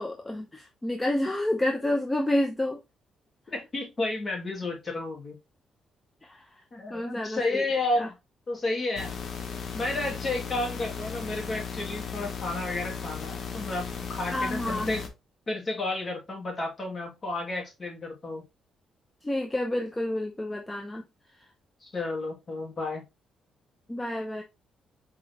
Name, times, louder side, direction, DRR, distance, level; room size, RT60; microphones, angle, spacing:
voice 1, 0.0-2.8 6.2-6.5 6.9-7.6 8.0-8.1 14.3-14.9 19.2-21.0 23.9-24.4, left 1 dB, 15° left, 0.7 m, -29 dB
voice 2, 3.5-5.4 6.7-8.1 8.5-9.1 9.7-15.0 15.5-18.4 21.8-23.0, left 2 dB, 35° left, 2.1 m, -31 dB
sound 1, 9.0-15.1, left 6 dB, 55° left, 1.0 m, -36 dB
4.6 x 3.8 x 2.8 m
cardioid pair, 90°, 0 cm